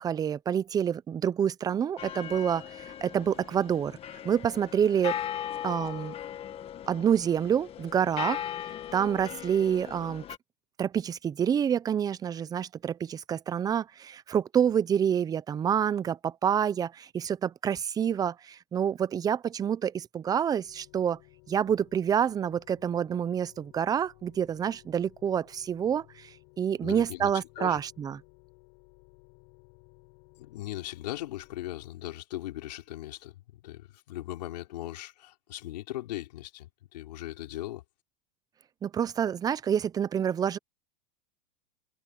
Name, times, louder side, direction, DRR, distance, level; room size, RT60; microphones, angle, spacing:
voice 1, 0.0-4.0 4.2-5.2 5.6-6.1 6.9-8.4 8.9-10.2 10.8-21.2 21.5-26.3 26.6-28.2 38.8-40.6, right 8 dB, 20° right, 0.7 m, -27 dB
sound 1, 2.0-10.4, left 10 dB, 25° left, 1.6 m, -38 dB
sound 2, 20.6-31.9, left 33 dB, 55° left, 4.7 m, -58 dB
voice 2, 26.8-27.8 30.4-37.8, left 15 dB, 75° left, 4.5 m, -39 dB
supercardioid pair, 135°, 21 cm